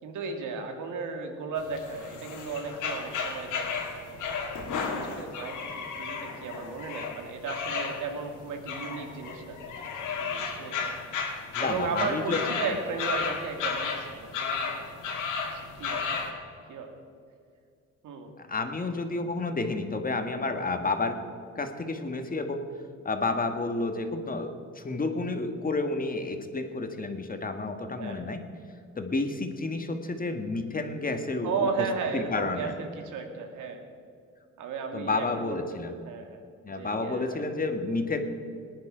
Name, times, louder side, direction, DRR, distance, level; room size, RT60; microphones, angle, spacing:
voice 1, 0.0-4.3 4.7-11.0 11.6-15.1 15.5-16.4 16.7-16.9 18.0-18.3 28.0-28.2 31.4-33.8 34.6-37.5, right 5 dB, 80° right, 4 dB, 2.2 m, -35 dB
sound 1, 1.6-16.3, left 5 dB, 85° left, 2.4 m, -34 dB
voice 2, 11.5-12.4 18.4-21.2 21.5-22.6 23.0-28.4 28.9-31.9 32.1-32.7 34.9-35.9 36.6-38.2, left 3 dB, 30° left, 6 dB, 1.7 m, -30 dB
19.0 x 10.5 x 5.1 m, 2.3 s
cardioid pair, 90°, 30 cm